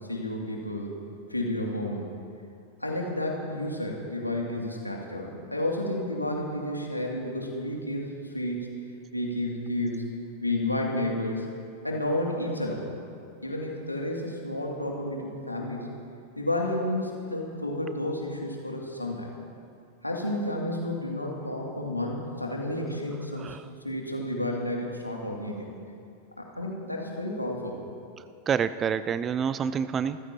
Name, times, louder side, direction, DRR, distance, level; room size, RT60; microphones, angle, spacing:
voice 1, 0.1-1.0 1.3-2.1 2.8-8.8 9.1-10.0 10.4-11.5 11.8-12.9 13.4-15.9 16.4-19.3 20.0-23.6 23.8-25.7 26.4-27.7, left 1 dB, 85° left, -1 dB, 2.4 m, -31 dB
voice 2, 23.4-23.7 28.5-30.2, right 7 dB, 25° right, 15 dB, 0.5 m, -28 dB
26.0 x 15.0 x 2.9 m, 2.5 s
figure-of-eight pair, 90°, 0 cm